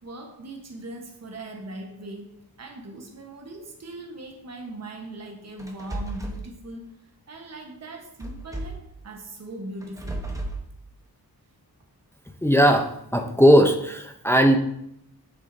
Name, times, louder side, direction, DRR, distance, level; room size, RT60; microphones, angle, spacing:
voice 1, 0.0-6.9 7.3-10.3, right 2 dB, 45° right, 1 dB, 1.2 m, -40 dB
sound 1, 5.6-6.4 8.2-8.9 9.8-10.6, right 1 dB, 10° right, 0.9 m, -33 dB
voice 2, 12.4-14.6, equal, 5° left, 4 dB, 0.6 m, -18 dB
8.4 x 6.9 x 2.7 m, 0.75 s
wide cardioid pair, 145°, 38 cm